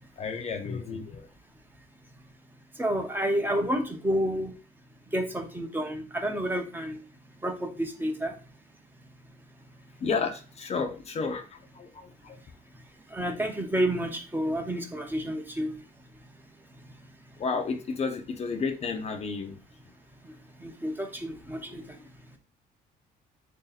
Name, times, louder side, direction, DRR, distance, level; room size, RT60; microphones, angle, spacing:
voice 1, 0.2-1.3 10.0-12.4 17.4-19.6 21.7-22.0, left 5 dB, 40° left, 4 dB, 0.6 m, -32 dB
voice 2, 2.8-4.5 5.1-7.0 7.4-8.3 13.1-15.7 20.6-21.8, equal, 10° right, 4 dB, 0.7 m, -29 dB
3.2 x 2.7 x 4.0 m, 0.36 s
cardioid pair, 110°, 17 cm